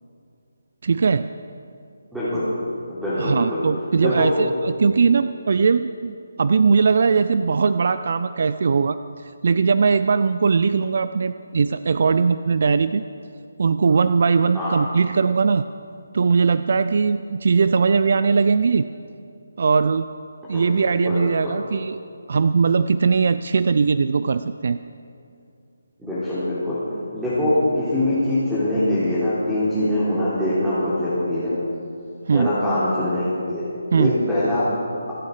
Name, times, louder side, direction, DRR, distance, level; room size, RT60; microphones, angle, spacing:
voice 1, 0.8-1.3 3.2-13.0 13.6-15.6 16.1-18.9 19.6-20.1 20.5-22.0 22.3-24.8 32.3-32.5 33.9-34.2, right 5 dB, 50° right, 13 dB, 0.4 m, -20 dB
voice 2, 2.1-2.4 2.9-3.6 4.0-4.3 14.5-14.7 20.5-21.5 26.0-26.8 27.1-31.5 32.3-33.6 33.9-34.6, left 1 dB, 5° right, -13 dB, 3.7 m, -23 dB
25.5 x 9.2 x 4.9 m, 2.5 s
figure-of-eight pair, 150°, 0 cm